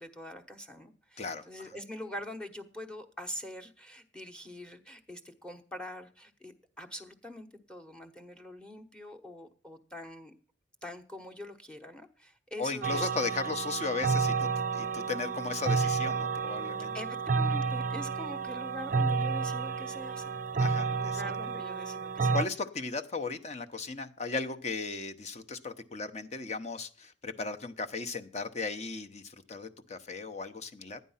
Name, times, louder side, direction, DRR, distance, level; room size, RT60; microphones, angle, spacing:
voice 1, 0.0-10.3 10.8-13.1 15.8-16.0 16.9-20.3 20.9-22.4, equal, 5° left, 7 dB, 1.0 m, -44 dB
voice 2, 12.6-17.0 20.6-21.2 22.3-31.0, left 4 dB, 40° left, 7 dB, 0.9 m, -36 dB
sound 1, 12.8-22.4, right 4 dB, 45° right, 0.5 m, -30 dB
12.5 x 9.4 x 5.6 m, 0.40 s
head